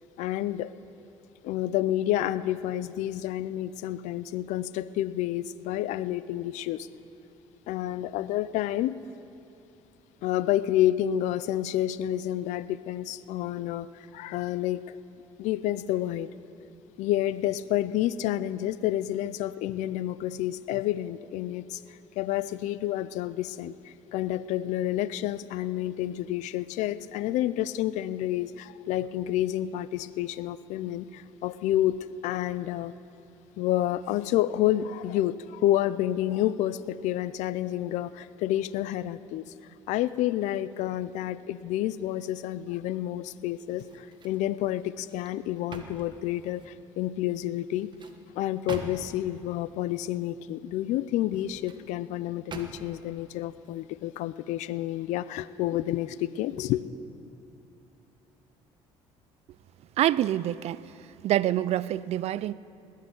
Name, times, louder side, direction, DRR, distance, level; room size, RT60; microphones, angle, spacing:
voice 1, 0.2-0.7 1.4-6.9 7.7-9.0 10.2-15.0 15.4-16.3 17.0-32.0 32.2-32.9 33.6-39.4 39.9-47.9 48.3-56.8, left 13 dB, 80° left, 0.5 m, -29 dB
sound 1, 43.7-44.5 44.9-46.8 47.6-49.3 51.1-51.8 52.5-53.1 53.6-53.8, right 4 dB, 40° right, 1.3 m, -44 dB
voice 2, 60.0-60.8 61.2-62.5, right 13 dB, 60° right, 0.4 m, -26 dB
19.0 x 6.5 x 9.3 m
cardioid pair, 90°, 12 cm